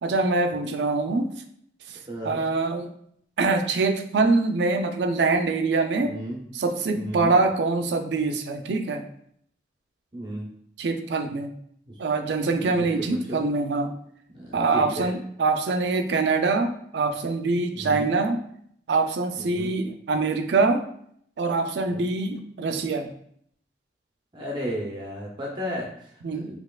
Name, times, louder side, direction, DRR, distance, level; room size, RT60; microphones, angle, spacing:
voice 1, 0.0-1.3 1.9-2.0 2.2-2.9 3.4-6.1 6.5-9.0 10.8-11.5 12.0-13.9 14.5-18.4 18.9-20.8 21.4-23.1 26.2-26.5, right 3 dB, 75° right, 7 dB, 0.4 m, -24 dB
voice 2, 2.1-2.4 6.0-6.4 6.9-7.3 10.1-10.5 11.9-12.0 12.6-13.4 14.3-15.1 17.7-18.1 19.5-19.7 21.9-22.1 24.3-26.6, equal, 25° right, -3 dB, 0.5 m, -34 dB
4.2 x 2.9 x 2.3 m, 0.67 s
head